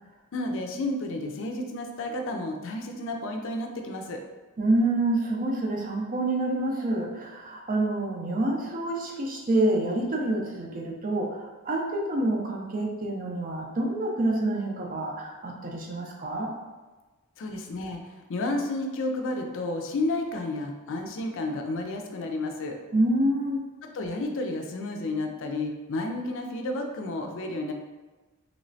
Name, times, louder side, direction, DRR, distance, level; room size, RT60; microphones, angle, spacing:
voice 1, 0.3-4.2 17.4-22.8 23.8-27.7, left 2 dB, 60° left, 3 dB, 0.4 m, -31 dB
voice 2, 4.6-16.5 22.9-23.6, right 1 dB, 40° right, 0 dB, 0.5 m, -27 dB
3.1 x 3.1 x 2.6 m, 1.2 s
head